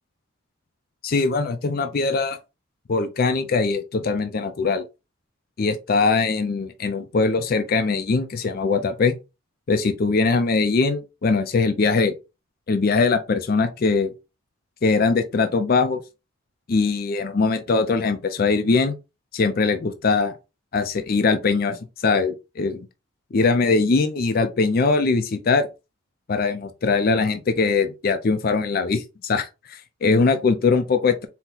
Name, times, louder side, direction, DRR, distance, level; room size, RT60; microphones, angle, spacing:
voice 1, 1.0-2.4 2.9-4.8 5.6-9.1 9.7-12.1 12.7-14.1 14.8-16.0 16.7-19.0 19.3-20.3 20.7-22.9 23.3-25.7 26.3-31.3, left 4 dB, 45° left, 0.4 m, -21 dB
4.3 x 2.1 x 3.8 m
head